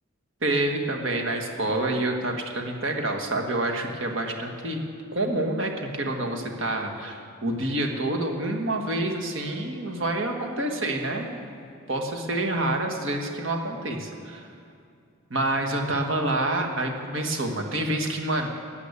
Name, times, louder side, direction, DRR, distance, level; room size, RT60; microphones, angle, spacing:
voice 1, 0.4-4.8 5.1-11.5 11.9-14.5 15.3-18.5, right 1 dB, 65° right, 3 dB, 1.7 m, -27 dB
13.5 x 8.1 x 8.3 m, 2.5 s
head